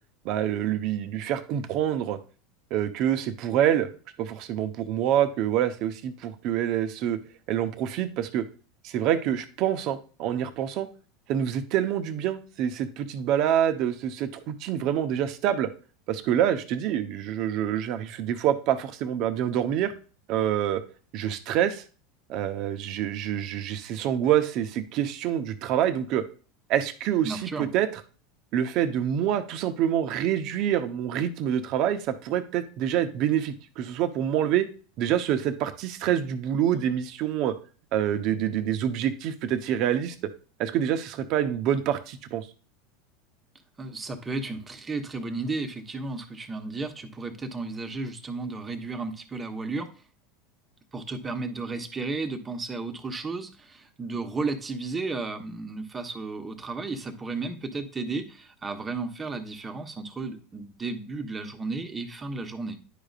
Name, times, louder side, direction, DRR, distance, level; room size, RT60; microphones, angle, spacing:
voice 1, 0.2-2.2 2.7-3.9 4.2-7.2 7.5-8.4 8.8-10.9 11.3-15.7 16.1-19.9 20.3-20.8 21.1-21.8 22.3-26.2 26.7-27.9 28.5-34.6 35.0-37.5 37.9-40.1 40.6-42.5, right 10 dB, 55° right, 9 dB, 0.9 m, -26 dB
voice 2, 27.2-27.7 43.8-49.9 50.9-62.8, right 3 dB, 20° right, 6 dB, 1.1 m, -33 dB
10.0 x 5.1 x 2.5 m, 0.38 s
hypercardioid pair, 95°, 0 cm